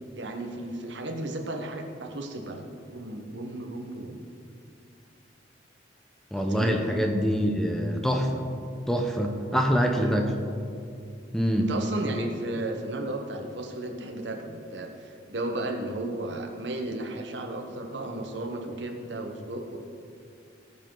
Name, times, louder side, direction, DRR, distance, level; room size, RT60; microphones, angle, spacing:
voice 1, 0.1-4.2 6.3-6.8 9.5-9.7 10.0-10.2 11.6-19.8, right 1 dB, 70° right, 3 dB, 1.2 m, -34 dB
voice 2, 6.3-8.4 8.9-10.3 11.3-11.7, equal, ahead, 2 dB, 0.8 m, -25 dB
18.0 x 7.5 x 3.9 m, 2.4 s
head